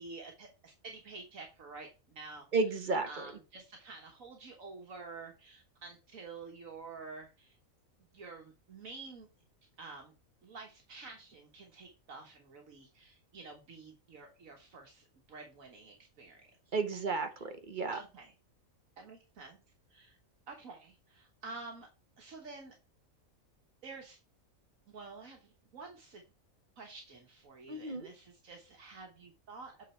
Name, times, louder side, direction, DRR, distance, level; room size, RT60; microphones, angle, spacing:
voice 1, 0.0-2.5 3.0-7.6 8.1-9.3 9.8-10.1 10.4-16.4 16.7-17.0 17.4-17.5 17.9-18.3 19.0-19.6 19.9-20.2 20.5-21.9 22.2-22.7 23.8-24.2 24.9-26.2 26.8-29.9, right 4 dB, 75° right, 2 dB, 1.6 m, -49 dB
voice 2, 2.5-3.2 16.7-18.0 27.7-28.1, right 4 dB, 40° right, 7 dB, 1.2 m, -33 dB
8.3 x 3.9 x 4.4 m, 0.30 s
omnidirectional pair, 1.4 m